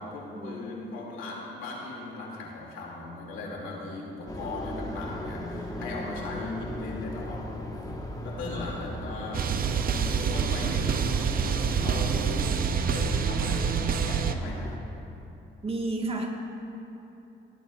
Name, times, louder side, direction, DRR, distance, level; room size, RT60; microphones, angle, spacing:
voice 1, 0.0-7.5 8.2-9.5 9.9-11.1 11.8-12.5 12.8-14.6, left 3 dB, 85° left, -2 dB, 2.2 m, -38 dB
sound 1, 4.3-14.8, left 1 dB, 20° left, 1.1 m, -38 dB
sound 2, 9.3-14.3, right 6 dB, 50° right, 0.6 m, -27 dB
voice 2, 15.6-16.3, right 2 dB, 30° right, 1 dB, 1.4 m, -32 dB
17.5 x 11.5 x 2.3 m, 2.9 s
cardioid pair, 90°, 20 cm